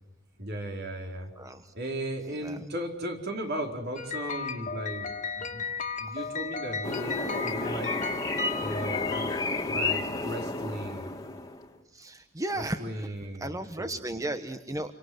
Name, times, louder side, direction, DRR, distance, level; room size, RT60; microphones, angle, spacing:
voice 1, 0.4-1.4 1.7-5.7 6.0-8.0 8.6-9.4 9.6-11.2 12.5-14.0, right 1 dB, 55° right, 4 dB, 4.4 m, -36 dB
voice 2, 1.4-1.7 2.4-2.6 6.1-6.2 11.9-13.1 13.4-14.9, right 1 dB, 15° right, 9 dB, 1.1 m, -35 dB
sound 1, 4.0-10.0, left 5 dB, 40° left, 2.1 m, -35 dB
sound 2, 6.8-11.7, left 2 dB, 20° left, 2.3 m, -32 dB
28.0 x 25.0 x 8.0 m, 0.79 s
head